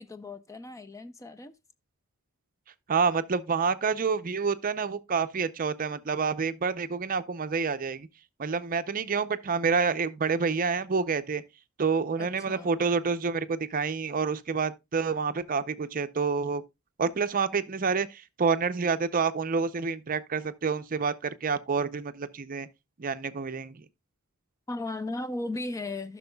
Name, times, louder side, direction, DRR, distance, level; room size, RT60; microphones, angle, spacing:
voice 1, 0.0-1.5 12.2-12.8 24.7-26.2, left 2 dB, 15° left, 0.4 m, -36 dB
voice 2, 2.9-8.1 8.4-11.4 11.8-16.6 17.0-22.7 23.0-23.8, right 5 dB, 40° right, 0.5 m, -28 dB
14.5 x 6.2 x 2.2 m
head